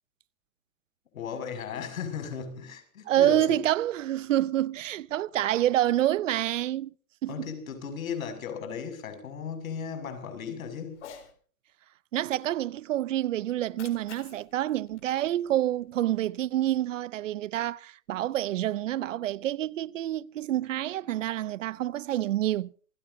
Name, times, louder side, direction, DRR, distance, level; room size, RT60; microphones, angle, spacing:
voice 1, 1.1-3.6 7.3-11.0, left 7 dB, 70° left, 6.4 m, -36 dB
voice 2, 3.1-6.9 7.2-7.5 12.1-22.7, right 13 dB, 60° right, 0.6 m, -27 dB
Cat, 10.9-11.3 13.5-15.9, left 8 dB, 55° left, 4.1 m, -50 dB
28.0 x 16.5 x 2.7 m
hypercardioid pair, 175°, 42 cm